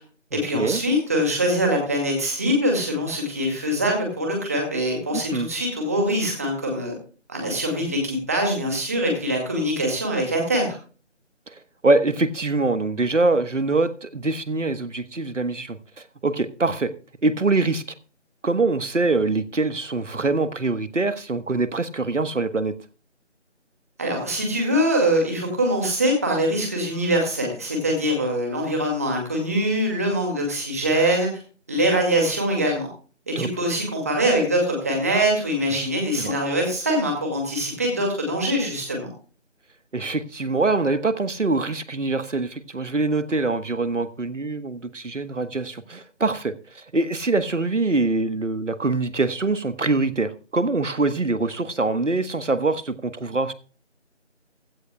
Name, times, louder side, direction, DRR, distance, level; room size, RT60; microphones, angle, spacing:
voice 1, 0.3-6.9 7.3-10.8 24.0-31.3 31.7-32.9 33.3-39.1, equal, 15° right, 1 dB, 2.1 m, -23 dB
voice 2, 5.1-5.5 11.8-15.8 16.2-16.9 17.2-17.8 18.4-22.7 33.3-33.5 35.7-35.9 36.2-36.4 39.9-53.5, right 3 dB, 75° right, 12 dB, 1.3 m, -24 dB
16.0 x 14.0 x 2.3 m, 0.39 s
figure-of-eight pair, 170°, 36 cm